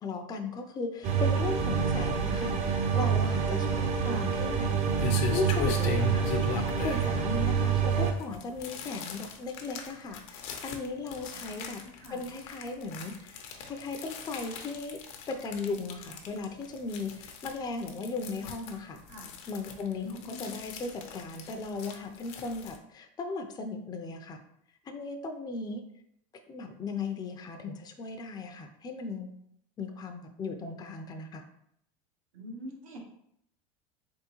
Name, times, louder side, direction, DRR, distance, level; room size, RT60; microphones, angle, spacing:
voice 1, 0.0-4.7 5.3-6.3 6.8-11.8 12.1-15.0 15.3-19.0 19.5-24.4 24.9-25.8 26.5-29.3 29.8-31.4, left 3 dB, 25° left, 4 dB, 0.5 m, -37 dB
sound 1, 1.0-8.1, right 6 dB, 40° right, 0.7 m, -27 dB
voice 2, 3.6-4.2 7.1-7.3 11.3-12.2 19.1-19.3 19.9-20.6 32.3-33.0, left 1 dB, 75° right, 0 dB, 1.1 m, -44 dB
sound 2, 4.2-22.8, left 6 dB, 65° left, 0.7 m, -40 dB
3.6 x 3.6 x 3.0 m, 0.72 s
supercardioid pair, 105°, 18 cm